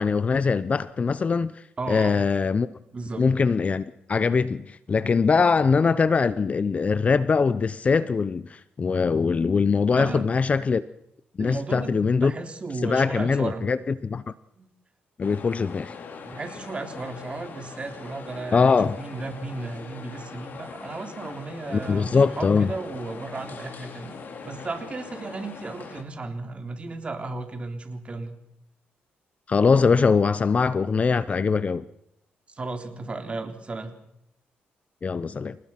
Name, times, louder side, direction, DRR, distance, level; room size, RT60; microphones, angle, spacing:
voice 1, 0.0-1.5 1.9-2.7 3.2-10.8 11.4-12.3 12.8-13.8 14.0-14.3 15.2-15.9 18.5-19.0 21.7-22.7 29.5-31.8 35.0-35.6, left 5 dB, 35° left, 0.7 m, -22 dB
voice 2, 1.8-2.2 2.9-3.3 9.9-10.3 11.4-13.6 14.6-14.7 16.3-28.4 32.5-33.9, right 3 dB, 30° right, 3.6 m, -34 dB
sound 1, 15.2-26.0, left 5 dB, 55° left, 3.8 m, -41 dB
28.5 x 18.5 x 5.9 m
cardioid pair, 100°, 4 cm